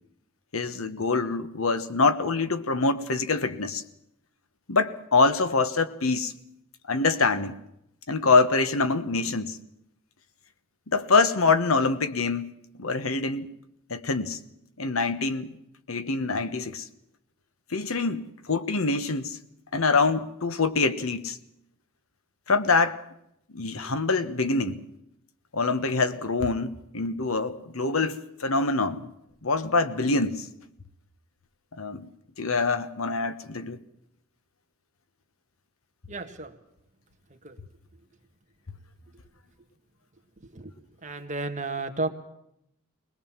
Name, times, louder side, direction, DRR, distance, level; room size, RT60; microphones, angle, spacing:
voice 1, 0.5-3.8 4.7-6.3 6.9-7.6 8.1-9.6 10.9-12.5 12.8-13.5 13.9-14.4 14.8-15.5 15.9-16.9 17.7-19.4 19.7-21.4 22.5-23.0 23.5-24.8 25.5-29.1 29.4-30.5 31.8-32.1 32.4-33.8, left 3 dB, 85° left, 1.3 m, -25 dB
voice 2, 36.1-36.5 37.4-37.6 40.5-40.7 41.0-42.1, right 2 dB, 35° right, 1.8 m, -32 dB
21.0 x 20.5 x 7.4 m
head